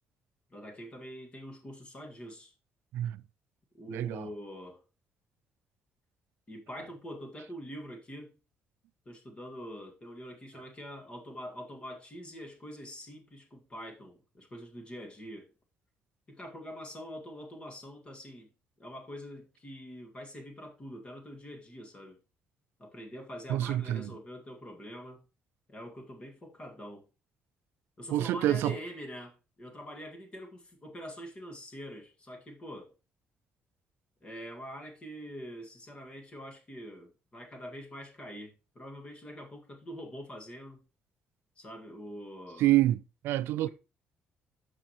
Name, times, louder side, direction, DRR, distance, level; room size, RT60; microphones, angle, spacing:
voice 1, 0.5-2.5 3.7-4.8 6.5-8.4 9.1-15.5 16.3-18.5 18.8-22.2 22.8-25.2 25.7-27.0 28.0-32.9 34.2-40.8 41.6-42.7 43.6-43.7, equal, 25° left, 1.8 m, -44 dB
voice 2, 3.9-4.3 23.5-24.1 28.1-28.7 42.6-43.7, right 14 dB, 85° right, 0.3 m, -27 dB
13.5 x 5.0 x 3.0 m
cardioid pair, 135°, 4 cm